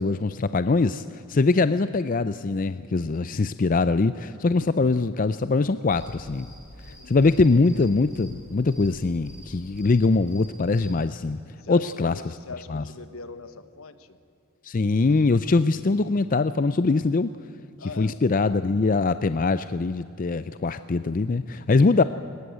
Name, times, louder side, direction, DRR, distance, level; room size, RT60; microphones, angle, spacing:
voice 1, 0.0-6.5 7.1-11.4 11.7-12.1 12.7-12.8 14.6-17.3 18.0-22.0, left 3 dB, 40° left, 13 dB, 0.4 m, -22 dB
sound 1, 5.9-10.9, equal, 5° right, 6.0 m, -46 dB
voice 2, 6.8-7.2 11.6-14.2 17.8-18.2, left 4 dB, 70° left, 11 dB, 1.3 m, -41 dB
22.0 x 20.0 x 8.1 m, 2.7 s
head